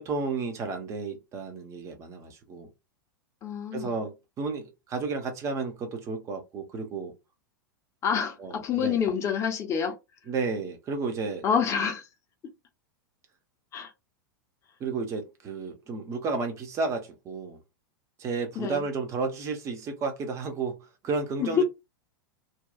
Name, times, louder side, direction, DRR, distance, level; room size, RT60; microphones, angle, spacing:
voice 1, 0.0-2.7 3.7-7.1 8.4-9.0 10.3-11.4 14.8-17.6 18.2-21.6, right 4 dB, 25° right, 0.7 m, -32 dB
voice 2, 3.4-4.0 8.0-9.9 11.4-12.1 13.7-13.9 18.6-18.8 21.4-21.6, left 7 dB, 25° left, 0.7 m, -27 dB
2.7 x 2.3 x 2.3 m
figure-of-eight pair, 90°, 11 cm